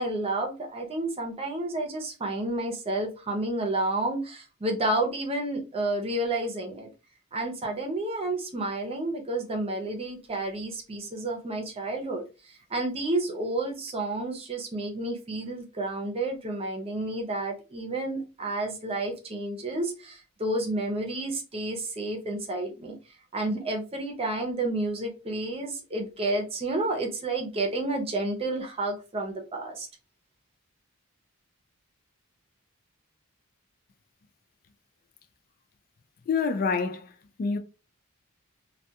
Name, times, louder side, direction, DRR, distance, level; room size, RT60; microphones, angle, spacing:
voice 1, 0.0-6.9 7.3-23.0 23.3-29.9, right 2 dB, 25° right, 0.6 m, -30 dB
voice 2, 36.3-37.1 37.4-37.6, left 5 dB, 40° left, 0.3 m, -26 dB
2.3 x 2.3 x 2.7 m
head